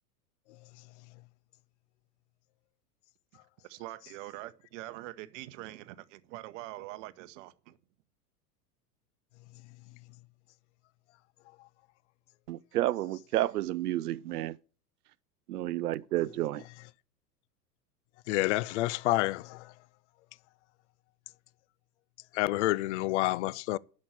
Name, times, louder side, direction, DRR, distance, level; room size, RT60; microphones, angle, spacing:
voice 1, 3.6-7.8, right 16 dB, 50° right, 1.0 m, -44 dB
voice 2, 12.5-14.6 15.5-16.6, right 15 dB, 70° right, 0.7 m, -31 dB
voice 3, 18.3-19.7 22.3-23.8, left 18 dB, 50° left, 0.5 m, -28 dB
11.0 x 6.3 x 8.2 m
figure-of-eight pair, 90°, 49 cm